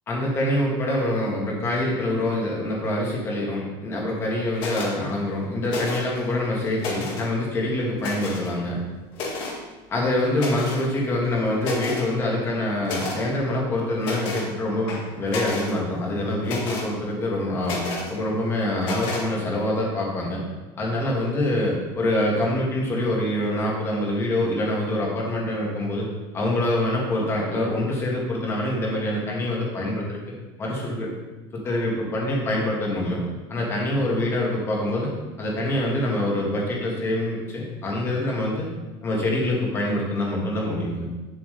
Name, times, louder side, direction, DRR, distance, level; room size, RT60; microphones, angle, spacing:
voice 1, 0.1-8.8 9.9-20.4 20.8-26.1 26.3-30.2 30.6-31.1 31.6-33.2 33.5-35.1 35.4-38.7 39.0-41.1, left 1 dB, 20° left, -2 dB, 1.7 m, -25 dB
sound 1, 4.6-4.9 5.7-6.2 6.6-7.3 8.0-8.5 9.1-9.6 10.4-10.9 11.3-11.4 11.6-12.1 12.8-13.2 14.0-14.5 14.9-15.7 16.4-16.9 17.6-18.1 18.8-19.3, left 3 dB, 45° left, 1.8 m, -31 dB
8.5 x 7.5 x 3.3 m, 1.2 s
cardioid pair, 170°, 12 cm